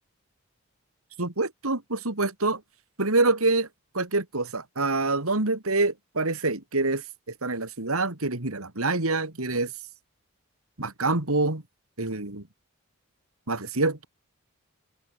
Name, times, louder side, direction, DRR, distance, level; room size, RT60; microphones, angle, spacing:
voice 1, 1.2-2.6 3.0-3.7 3.9-7.0 7.4-9.7 10.8-11.6 12.0-12.4 13.5-14.1, right 3 dB, 85° right, 3.0 m, -26 dB
head